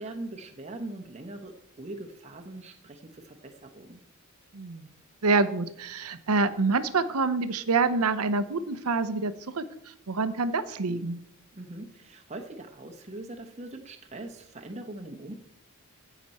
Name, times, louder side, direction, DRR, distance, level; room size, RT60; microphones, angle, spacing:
voice 1, 0.0-4.0 11.5-15.3, right 2 dB, 30° right, 3 dB, 0.9 m, -41 dB
voice 2, 4.5-4.9 5.2-11.2, right 3 dB, 85° right, 13 dB, 0.7 m, -27 dB
15.5 x 6.0 x 4.2 m, 0.76 s
head